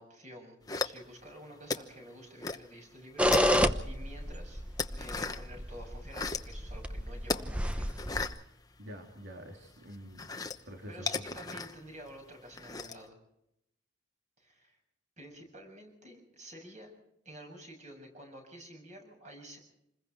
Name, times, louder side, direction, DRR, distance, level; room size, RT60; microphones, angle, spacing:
voice 1, 0.0-3.5 3.8-4.6 5.0-7.9 10.9-13.2 14.4-14.8 15.2-16.9 17.3-19.6, right 1 dB, 35° right, 2 dB, 7.0 m, -50 dB
sound 1, 0.7-1.3 1.7-2.7 3.0-3.9 4.3-5.5 5.9-6.5 7.2-9.3 9.6-13.1, left 4 dB, 20° left, 1.0 m, -36 dB
sound 2, 3.2-8.3, equal, 5° right, 0.9 m, -30 dB
voice 2, 8.8-10.3 10.7-11.2, equal, 70° right, 2 dB, 3.2 m, -46 dB
27.5 x 21.5 x 4.7 m, 0.81 s
head